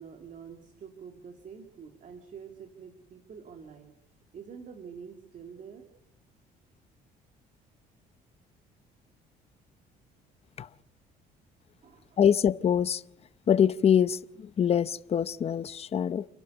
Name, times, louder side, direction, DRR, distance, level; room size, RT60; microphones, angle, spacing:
voice 1, 0.0-3.9 4.3-5.9 11.8-12.2, right 6 dB, 50° right, 2.6 m, -46 dB
voice 2, 12.2-13.0 13.5-16.3, left 8 dB, 35° left, 0.7 m, -24 dB
29.5 x 12.0 x 8.1 m
cardioid pair, 110°, 17 cm